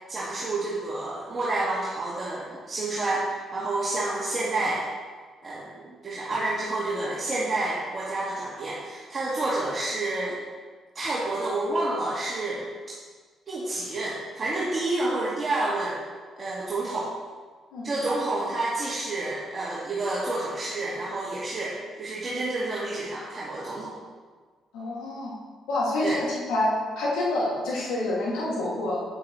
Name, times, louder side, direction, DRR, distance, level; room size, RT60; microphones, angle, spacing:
voice 1, 0.1-3.3 3.5-4.9 5.4-10.4 10.9-12.6 13.5-16.0 16.4-17.1 17.8-23.9 26.0-26.2, right 2 dB, 40° right, -8 dB, 2.0 m, -29 dB
voice 2, 24.7-25.3 25.7-29.0, left 1 dB, 90° left, -6 dB, 2.3 m, -27 dB
9.6 x 8.3 x 3.2 m, 1.5 s
cardioid pair, 90°, 0 cm